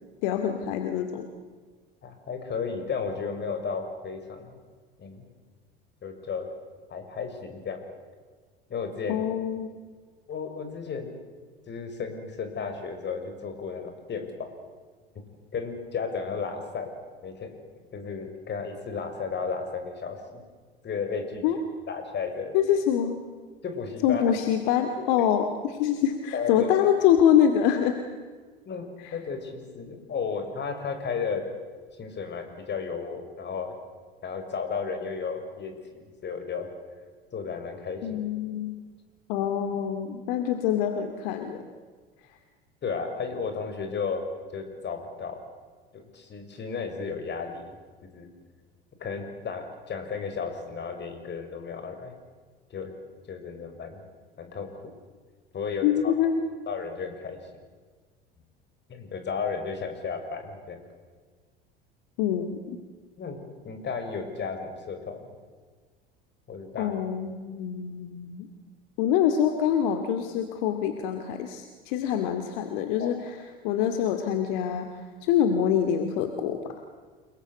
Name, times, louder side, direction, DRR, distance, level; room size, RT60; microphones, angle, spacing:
voice 1, 0.2-1.3 9.1-9.7 21.4-21.6 22.5-23.2 24.0-28.0 29.0-29.1 38.0-38.8 39.3-41.6 55.8-56.5 62.2-62.8 66.8-68.5 69.0-73.4 73.6-74.9 75.2-76.8, left 9 dB, 60° left, 7 dB, 2.4 m, -25 dB
voice 2, 2.0-4.5 5.0-5.2 6.0-6.5 6.9-7.8 8.7-9.2 10.3-11.2 11.7-14.5 15.5-16.9 17.2-17.6 17.9-20.4 20.8-21.4 21.9-22.5 23.6-24.2 25.0-25.3 26.3-26.7 28.7-31.4 32.0-33.8 34.2-36.7 37.3-38.2 42.8-44.2 44.5-45.4 45.9-47.6 48.1-48.3 49.0-52.1 52.7-52.9 53.3-54.0 54.4-54.8 55.5-56.1 56.7-57.4 58.9-60.8 63.2-65.2 66.5-66.9 73.0-73.1, left 5 dB, 35° left, 6 dB, 6.3 m, -33 dB
29.5 x 21.0 x 8.3 m, 1.5 s
hypercardioid pair, 75°, 30 cm